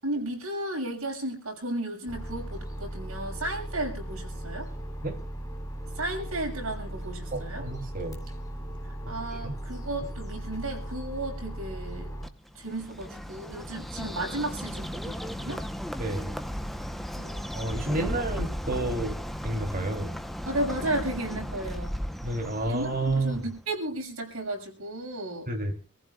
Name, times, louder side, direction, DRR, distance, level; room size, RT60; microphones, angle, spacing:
voice 1, 0.0-4.7 5.9-7.7 9.1-12.1 12.5-15.6 17.2-17.4 18.0-18.1 20.4-22.0 22.6-25.5, right 1 dB, 70° right, 6.5 m, -34 dB
sound 1, 2.1-12.3, right 1 dB, 15° left, 3.6 m, -37 dB
voice 2, 7.3-8.2 9.0-9.6 16.0-16.3 17.5-19.2 19.4-20.2 22.2-23.4 25.5-25.7, right 2 dB, 40° right, 3.0 m, -30 dB
Bird, 12.2-23.6, equal, ahead, 0.9 m, -35 dB
26.5 x 15.0 x 2.4 m
head